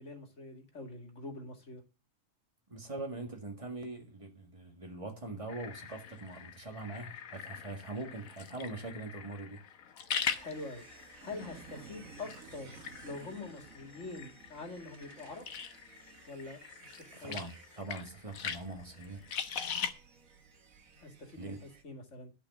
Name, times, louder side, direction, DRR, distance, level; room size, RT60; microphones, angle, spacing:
voice 1, 0.0-1.8 10.3-10.8 11.2-15.4 16.3-17.4 21.0-21.5 21.8-22.3, left 3 dB, 60° left, 2.6 m, -45 dB
voice 2, 2.7-9.6 17.1-19.2 21.4-21.6, right 2 dB, 25° right, 2.0 m, -42 dB
sound 1, 5.5-19.9, left 7 dB, 90° left, 1.4 m, -42 dB
sound 2, 10.2-21.8, right 5 dB, 85° right, 1.8 m, -55 dB
11.5 x 5.5 x 7.1 m
omnidirectional pair, 1.4 m